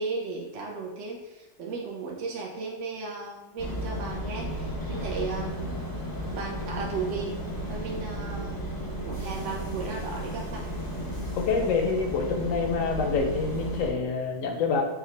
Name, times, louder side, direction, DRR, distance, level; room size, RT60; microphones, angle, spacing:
voice 1, 0.0-5.8 6.3-7.3 7.7-8.6 9.0-10.6 11.7-11.8, right 4 dB, 65° right, -1 dB, 0.8 m, -35 dB
sound 1, 3.6-13.9, equal, 30° left, 0.4 m, -34 dB
voice 2, 11.4-14.8, left 4 dB, 70° left, 2 dB, 0.9 m, -26 dB
4.8 x 2.2 x 3.2 m, 1.1 s
omnidirectional pair, 1.5 m